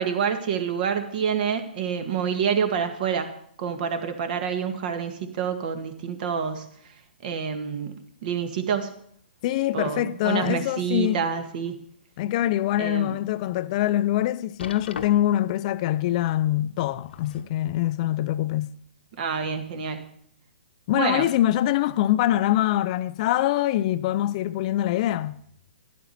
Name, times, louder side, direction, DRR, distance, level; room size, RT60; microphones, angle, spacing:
voice 1, 0.0-3.3 3.6-6.8 7.2-7.9 8.2-8.9 9.7-11.8 12.8-13.2 19.2-20.1 20.9-21.3, right 7 dB, 55° right, 1.7 m, -27 dB
voice 2, 9.4-11.2 12.2-18.7 20.9-25.4, left 13 dB, 40° left, 0.4 m, -24 dB
sound 1, 10.7-11.5 12.0-12.1 12.7-12.8 14.6-15.5 16.8-17.6 18.5-18.6, left 6 dB, 85° left, 1.0 m, -40 dB
11.5 x 11.0 x 4.2 m
hypercardioid pair, 140°, 6 cm